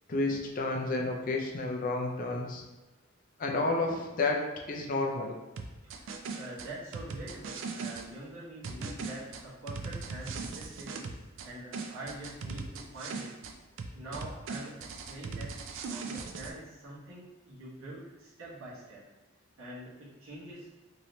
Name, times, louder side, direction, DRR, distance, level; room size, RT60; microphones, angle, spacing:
voice 1, 0.1-2.6 3.4-5.3, left 2 dB, 40° left, 1 dB, 0.4 m, -31 dB
sound 1, 5.6-8.1 8.6-11.5 11.7-13.5 13.8-16.5, right 4 dB, 65° right, 0.3 m, -39 dB
voice 2, 5.8-10.9 11.4-13.3 13.9-15.5 16.0-19.0 19.6-20.7, right 1 dB, 85° right, -8 dB, 1.2 m, -45 dB
2.9 x 2.8 x 3.1 m, 1.1 s
head